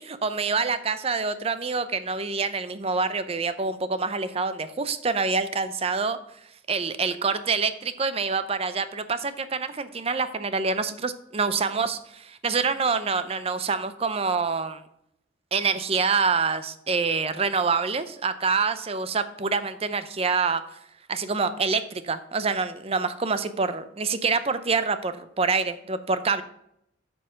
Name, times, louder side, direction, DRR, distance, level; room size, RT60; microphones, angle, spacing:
voice 1, 0.0-6.2 6.7-14.8 15.5-20.8 21.1-26.4, right 4 dB, 30° right, 12 dB, 0.6 m, -26 dB
8.3 x 5.4 x 5.6 m, 0.76 s
head